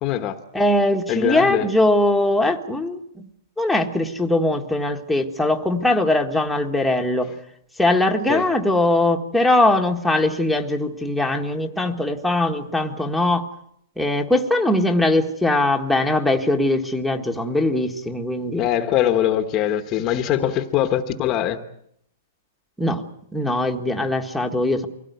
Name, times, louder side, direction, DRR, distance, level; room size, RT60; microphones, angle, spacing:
voice 1, 0.0-0.4 1.1-1.7 8.3-8.4 18.6-21.6, left 11 dB, 25° left, 1.2 m, -22 dB
voice 2, 0.5-3.3 3.6-7.3 7.8-13.5 14.0-18.6 20.4-20.5 22.8-23.0 23.3-24.9, left 1 dB, ahead, 1.5 m, -21 dB
23.5 x 17.0 x 9.4 m
hypercardioid pair, 160°, 0 cm